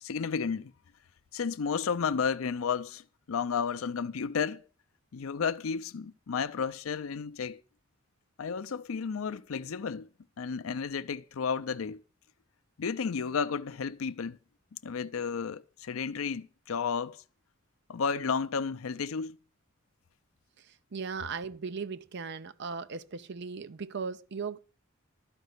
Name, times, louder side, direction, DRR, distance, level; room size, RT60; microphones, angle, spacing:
voice 1, 0.0-0.7 1.3-4.6 5.1-7.6 8.4-10.1 10.4-12.0 12.8-14.4 14.8-17.2 17.9-19.4, left 6 dB, 85° left, 0.5 m, -32 dB
voice 2, 20.6-24.6, right 5 dB, 55° right, 0.6 m, -38 dB
12.0 x 5.3 x 7.9 m
head